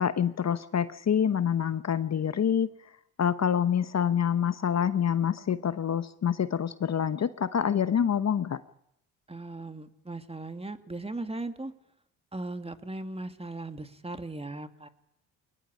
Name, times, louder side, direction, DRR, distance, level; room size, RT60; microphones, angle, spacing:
voice 1, 0.0-2.7 3.2-8.6, left 8 dB, 45° left, 13 dB, 1.1 m, -26 dB
voice 2, 9.3-11.7 12.3-14.9, right 2 dB, 15° right, 8 dB, 2.3 m, -38 dB
21.5 x 19.5 x 10.0 m, 0.76 s
supercardioid pair, 60°, 38 cm